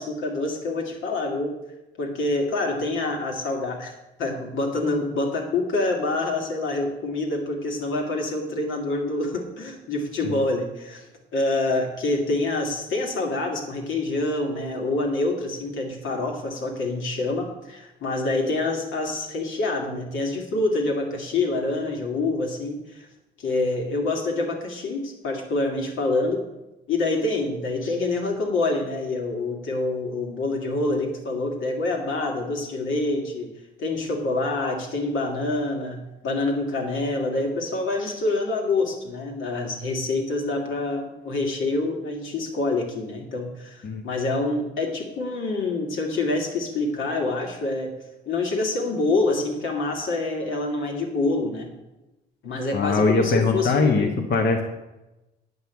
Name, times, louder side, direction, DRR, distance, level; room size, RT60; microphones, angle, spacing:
voice 1, 0.0-1.5 2.0-3.9 4.2-11.1 11.3-23.1 23.4-26.4 26.9-33.5 33.8-47.9 48.3-51.7 52.4-54.1, left 2 dB, 80° left, 1 dB, 2.3 m, -26 dB
voice 2, 52.7-54.6, left 3 dB, 60° left, 2 dB, 1.4 m, -21 dB
9.8 x 5.5 x 8.2 m, 0.99 s
cardioid pair, 90°, 20 cm